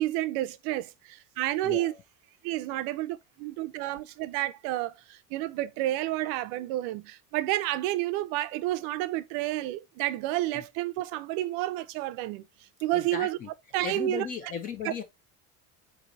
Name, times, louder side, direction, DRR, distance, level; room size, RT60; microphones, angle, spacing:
voice 1, 0.0-1.9 2.4-12.4 12.8-13.4 13.7-14.3 14.8-14.9, right 15 dB, 55° right, 0.5 m, -30 dB
voice 2, 1.6-2.0 10.5-10.6 12.9-13.5 13.8-15.0, left 6 dB, 20° left, 0.4 m, -36 dB
4.5 x 2.7 x 3.9 m
cardioid pair, 165°, 41 cm